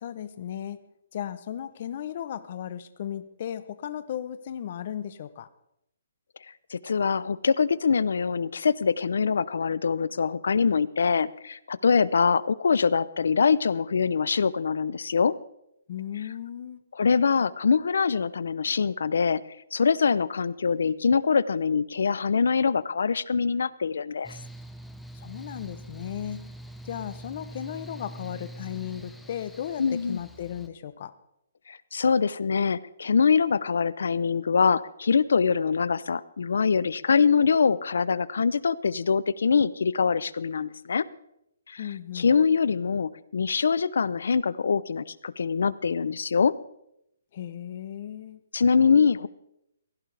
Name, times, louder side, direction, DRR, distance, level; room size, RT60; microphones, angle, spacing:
voice 1, 0.0-0.8 1.1-5.5 15.9-16.8 25.1-26.4 26.8-31.1 41.8-42.4 47.3-48.4, left 10 dB, 35° left, 14 dB, 0.7 m, -36 dB
voice 2, 6.7-15.3 16.9-19.4 19.7-24.4 29.8-30.2 31.7-41.0 41.7-41.8 42.1-46.5 48.5-49.3, left 5 dB, 75° left, 19 dB, 0.5 m, -24 dB
Mechanical fan, 24.2-30.7, right 1 dB, ahead, 0.5 m, -44 dB
16.5 x 15.0 x 3.4 m, 0.79 s
hypercardioid pair, 175°, 0 cm